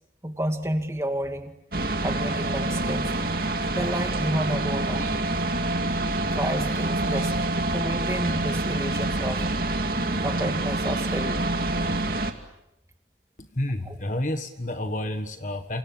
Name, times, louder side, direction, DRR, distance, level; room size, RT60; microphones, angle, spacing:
voice 1, 0.2-1.5 2.0-3.1 3.7-5.2 6.3-7.3 7.7-9.4 10.2-11.6 13.9-14.0, right 1 dB, 15° right, 5 dB, 2.3 m, -30 dB
sound 1, 1.7-12.3, right 2 dB, 55° right, 2.5 m, -26 dB
voice 2, 13.4-15.8, left 1 dB, 45° left, 7 dB, 1.6 m, -30 dB
29.0 x 27.5 x 7.3 m, 0.84 s
head